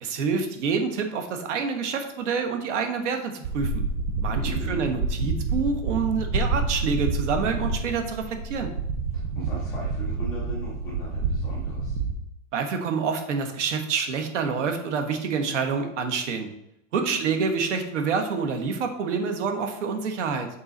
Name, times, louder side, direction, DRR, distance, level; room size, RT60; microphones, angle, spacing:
voice 1, 0.0-3.8 4.1-8.7 12.5-16.5 16.9-20.5, right 5 dB, 70° right, 6 dB, 1.2 m, -27 dB
sound 1, 3.4-12.1, right 3 dB, 40° right, 0.8 m, -28 dB
voice 2, 4.3-4.9 9.1-12.0 17.0-17.4, equal, 10° left, -9 dB, 0.3 m, -39 dB
6.8 x 3.9 x 4.0 m, 0.80 s
supercardioid pair, 170°, 38 cm